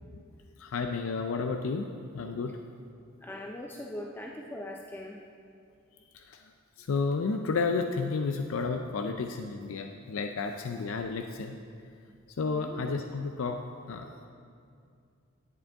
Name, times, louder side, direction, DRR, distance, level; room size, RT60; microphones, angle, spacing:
voice 1, 0.6-2.6 6.1-6.4 6.8-11.6 12.4-13.6 13.9-14.1, left 4 dB, 70° left, 5 dB, 0.4 m, -32 dB
voice 2, 3.2-5.2 12.4-12.8 14.0-14.2, left 1 dB, 10° left, 0 dB, 0.4 m, -41 dB
10.5 x 8.9 x 3.6 m, 2.3 s
head